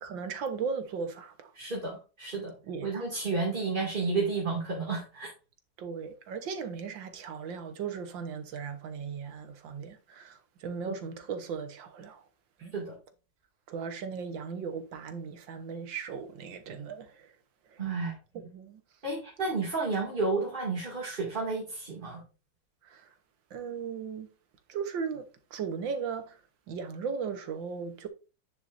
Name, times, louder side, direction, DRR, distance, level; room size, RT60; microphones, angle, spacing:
voice 1, 0.0-1.5 2.7-2.9 5.8-12.2 12.6-12.7 13.7-17.3 17.7-17.8 18.3-18.8 22.8-23.1 23.5-24.3 24.7-26.4 26.7-28.1, right 6 dB, 80° right, 1.9 m, -37 dB
voice 2, 1.5-2.5 2.8-5.3 10.9-11.0 12.6-13.0 17.8-18.2 19.0-22.2, right 3 dB, 25° right, 2.5 m, -31 dB
9.6 x 7.1 x 2.6 m
omnidirectional pair, 2.0 m